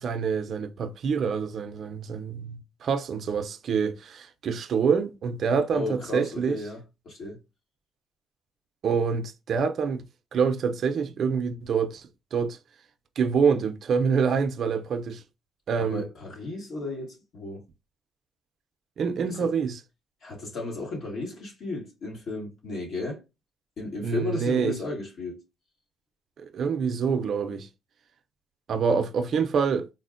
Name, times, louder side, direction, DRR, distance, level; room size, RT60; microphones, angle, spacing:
voice 1, 0.0-6.6 8.8-10.1 10.3-12.6 13.2-15.2 15.7-16.0 19.0-19.8 24.0-24.8 26.4-27.7 28.7-29.9, right 6 dB, 60° right, 0.4 m, -26 dB
voice 2, 5.7-6.8 7.0-7.4 15.8-17.6 20.2-23.2 23.8-25.4, left 2 dB, 70° left, 1.5 m, -34 dB
4.2 x 2.0 x 2.5 m
cardioid pair, 90°, 0 cm